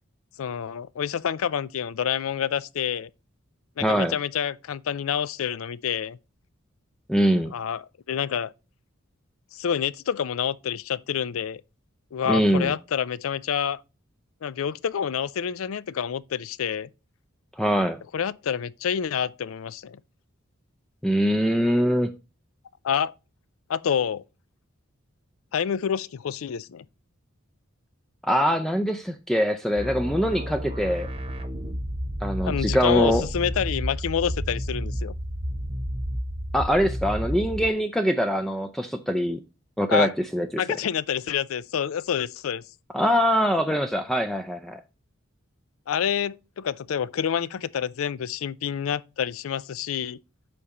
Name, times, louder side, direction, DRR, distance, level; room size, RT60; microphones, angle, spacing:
voice 1, 0.4-3.1 3.8-6.2 7.5-8.5 9.5-11.6 12.1-13.8 14.4-16.9 18.1-20.0 22.8-23.1 23.7-24.2 25.5-26.8 32.4-35.1 39.9-40.1 40.6-42.6 45.9-50.2, left 8 dB, 75° left, 0.4 m, -28 dB
voice 2, 3.8-4.1 7.1-7.5 12.3-12.7 17.6-18.0 21.0-22.1 28.2-31.1 32.2-33.2 36.5-39.4 39.8-40.5 42.9-44.8, equal, ahead, 0.4 m, -23 dB
sound 1, 29.8-37.7, equal, 25° right, 1.0 m, -31 dB
8.4 x 5.5 x 2.9 m
head